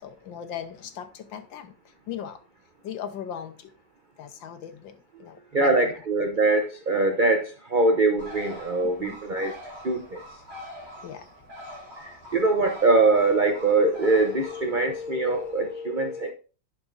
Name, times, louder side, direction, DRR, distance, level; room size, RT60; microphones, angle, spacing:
voice 1, 0.0-1.7 2.1-2.4 2.8-3.7 4.2-5.9 9.0-9.2 11.0-11.2, left 9 dB, 85° left, 1.6 m, -38 dB
voice 2, 5.5-9.5 9.8-10.2 12.0-16.3, right 2 dB, 75° right, 0.4 m, -23 dB
Bird, 8.2-15.6, equal, 35° right, 2.7 m, -44 dB
11.0 x 5.1 x 2.5 m
omnidirectional pair, 2.0 m